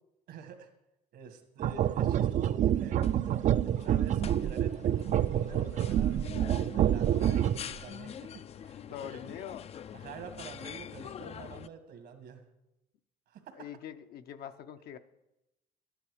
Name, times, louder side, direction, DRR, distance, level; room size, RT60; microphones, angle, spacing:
voice 1, 0.3-0.7 1.1-3.1 3.7-9.3 9.9-12.5 13.3-13.7, right 6 dB, 75° right, 7 dB, 1.9 m, -47 dB
sound 1, 1.6-7.8, right 11 dB, 45° right, 0.4 m, -27 dB
sound 2, 2.5-11.7, left 9 dB, 40° left, 0.4 m, -45 dB
voice 2, 8.9-9.7 13.5-15.0, left 9 dB, 70° left, 10 dB, 0.7 m, -43 dB
12.0 x 10.0 x 5.0 m, 0.91 s
cardioid pair, 110°, 17 cm